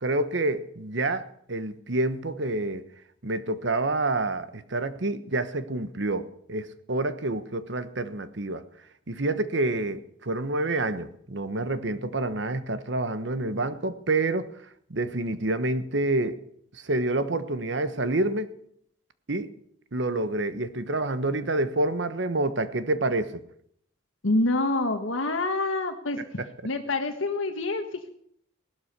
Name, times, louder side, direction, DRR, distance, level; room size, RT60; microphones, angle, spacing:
voice 1, 0.0-2.8 3.2-8.6 9.1-14.5 14.9-16.4 16.8-18.5 19.3-19.5 19.9-23.3, right 2 dB, 65° right, 1.1 m, -28 dB
voice 2, 24.2-26.2 26.6-28.1, left 2 dB, 90° left, 1.4 m, -26 dB
17.5 x 12.0 x 6.7 m
head